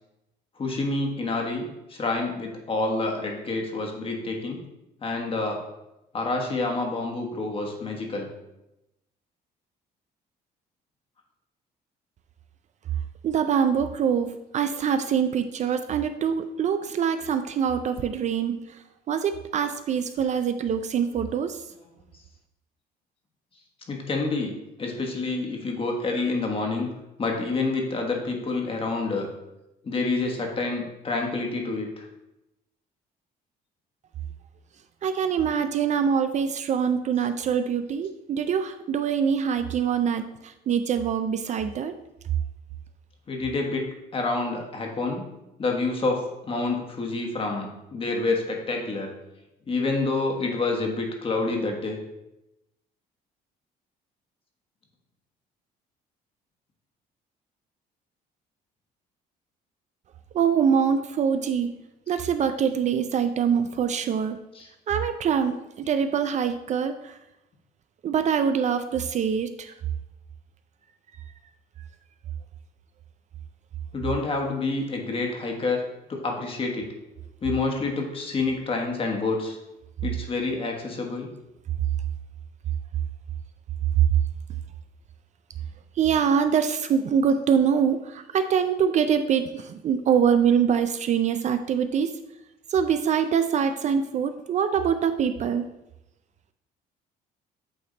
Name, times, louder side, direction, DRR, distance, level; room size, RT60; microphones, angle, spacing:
voice 1, 0.6-4.6 5.0-5.6 6.1-8.3 23.9-26.9 27.2-29.3 29.8-32.0 43.3-43.8 44.1-45.3 45.6-49.1 49.7-52.0 64.5-64.7 73.9-75.8 76.1-76.9 77.4-79.6 80.0-81.3, left 3 dB, 30° left, 1 dB, 1.3 m, -28 dB
voice 2, 13.2-18.6 19.1-21.6 35.0-41.9 60.3-61.8 62.1-64.4 64.9-67.2 68.0-69.7 86.0-92.1 92.7-95.7, right 7 dB, 45° right, 9 dB, 0.4 m, -24 dB
8.5 x 3.4 x 3.9 m, 0.92 s
cardioid pair, 110°, 17 cm